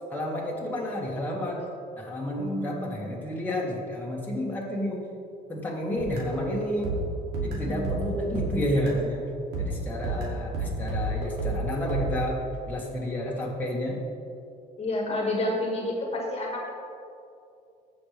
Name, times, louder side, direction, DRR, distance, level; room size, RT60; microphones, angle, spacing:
voice 1, 0.1-1.7 2.0-5.1 5.5-6.9 7.4-9.2 9.6-14.0, equal, 10° left, -4 dB, 1.8 m, -30 dB
voice 2, 2.4-3.0 7.5-8.1 14.8-16.7, left 1 dB, 35° left, 0 dB, 1.7 m, -30 dB
sound 1, 6.0-9.1 9.5-12.2, right 2 dB, 80° right, 2.5 m, -31 dB
15.0 x 6.4 x 3.4 m, 2.6 s
cardioid pair, 110°, 17 cm